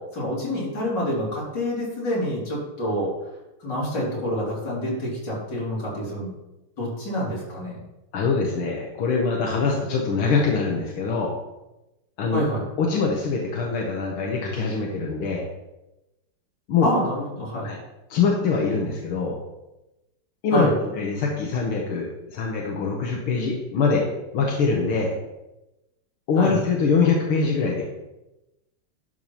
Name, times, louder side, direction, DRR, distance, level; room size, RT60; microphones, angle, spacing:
voice 1, 0.1-3.1 3.6-6.3 6.8-7.8 12.3-12.7 16.8-17.7 20.5-20.7 26.4-26.6, equal, 55° left, -6 dB, 4.0 m, -27 dB
voice 2, 8.1-11.4 12.2-12.4 12.8-15.5 16.7-16.9 17.6-17.8 18.1-19.4 20.4-20.7 20.9-24.1 24.3-25.2 26.3-27.9, left 4 dB, 85° left, -1 dB, 2.0 m, -23 dB
11.5 x 4.7 x 5.6 m, 0.98 s
omnidirectional pair, 2.3 m